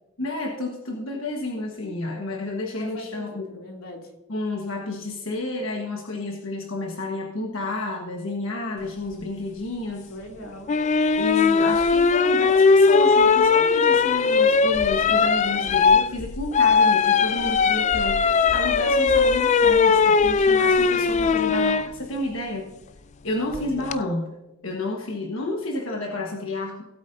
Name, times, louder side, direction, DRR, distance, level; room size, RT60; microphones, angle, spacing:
voice 1, 0.2-3.4 4.3-10.1 11.2-22.7 23.2-24.3 24.6-26.8, left 2 dB, 65° left, 0 dB, 1.4 m, -30 dB
voice 2, 2.7-4.1 10.0-10.7 21.0-21.7, left 1 dB, 85° left, 0 dB, 2.9 m, -41 dB
sound 1, 10.7-21.9 23.5-24.0, left 5 dB, 35° left, 0.4 m, -19 dB
18.0 x 8.3 x 2.7 m, 1.0 s
head